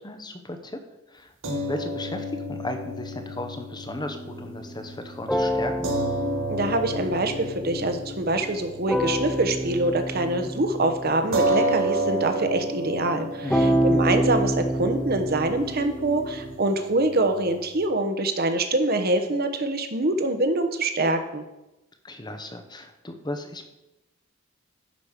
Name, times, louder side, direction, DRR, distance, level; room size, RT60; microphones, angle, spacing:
voice 1, 0.0-0.8 1.1-5.9 13.4-13.8 22.0-23.7, left 1 dB, 20° left, 6 dB, 1.0 m, -35 dB
sound 1, 1.4-9.9 10.3-10.4 11.3-17.9, right 1 dB, 75° right, 1.4 m, -31 dB
sound 2, 3.9-8.5 8.9-11.7 13.5-16.6, equal, 5° left, 0.6 m, -28 dB
voice 2, 6.5-21.4, right 2 dB, 50° right, 7 dB, 1.0 m, -25 dB
10.5 x 5.3 x 6.5 m, 0.96 s
head